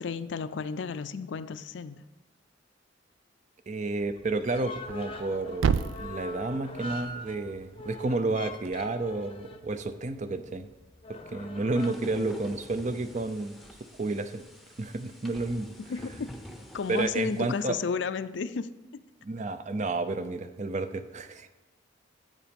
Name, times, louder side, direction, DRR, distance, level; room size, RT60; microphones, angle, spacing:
voice 1, 0.0-2.0 12.1-12.3 15.8-16.3 16.7-18.7, left 5 dB, 65° left, 13 dB, 0.4 m, -33 dB
voice 2, 3.7-10.7 11.1-13.6 14.0-14.4 14.8-15.7 16.9-17.8 19.2-21.5, right 2 dB, 40° right, 11 dB, 0.5 m, -31 dB
sound 1, 4.0-11.9, left 1 dB, 30° left, 0.7 m, -43 dB
Thump thud, 4.7-8.8, right 6 dB, 85° right, 0.4 m, -34 dB
sound 2, 11.8-17.7, equal, ahead, 0.8 m, -47 dB
8.4 x 7.4 x 5.2 m, 1.1 s
head